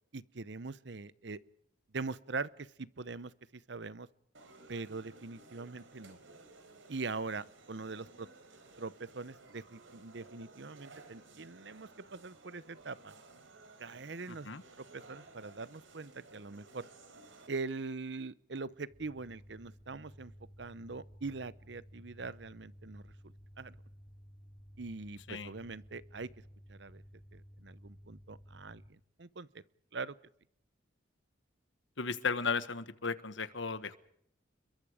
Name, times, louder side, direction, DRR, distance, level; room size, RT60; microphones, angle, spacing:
voice 1, 0.1-1.4 1.9-4.1 4.7-6.2 6.9-8.3 8.8-13.1 13.8-14.5 14.8-16.9 17.5-20.3 20.6-23.1 23.6-23.8 24.8-26.3 26.7-27.0 27.3-29.5 29.9-30.2, right 3 dB, 65° right, 18 dB, 0.8 m, -42 dB
sound 1, 4.3-17.5, right 3 dB, 85° right, 4.4 m, -57 dB
voice 2, 14.3-14.6 25.3-25.5 32.0-34.0, left 5 dB, 75° left, 13 dB, 1.4 m, -35 dB
sound 2, 18.9-28.9, equal, 10° left, 4.0 m, -55 dB
29.5 x 22.5 x 5.0 m, 0.71 s
head